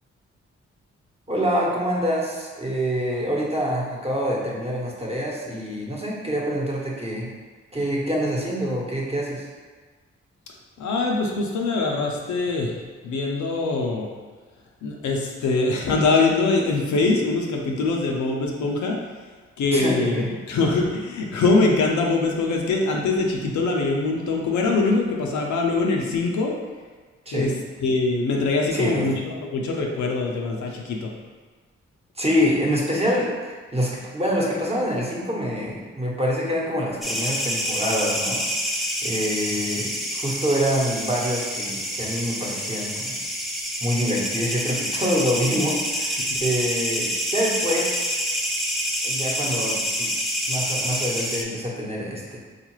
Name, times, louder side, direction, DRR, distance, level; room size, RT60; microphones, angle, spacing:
voice 1, 1.3-7.3 7.7-9.5 19.7-20.3 27.3-27.5 28.7-29.1 32.2-38.4 39.0-43.1 43.8-48.1 49.0-50.1 50.5-52.4, equal, 20° right, -4 dB, 1.0 m, -26 dB
voice 2, 10.8-12.7 13.0-14.1 14.8-19.0 19.6-26.5 27.3-27.5 27.8-31.1, left 3 dB, 75° left, 0 dB, 0.5 m, -23 dB
sound 1, 37.0-51.4, equal, ahead, 0.5 m, -27 dB
3.7 x 2.4 x 3.0 m, 1.4 s
supercardioid pair, 45°, 29 cm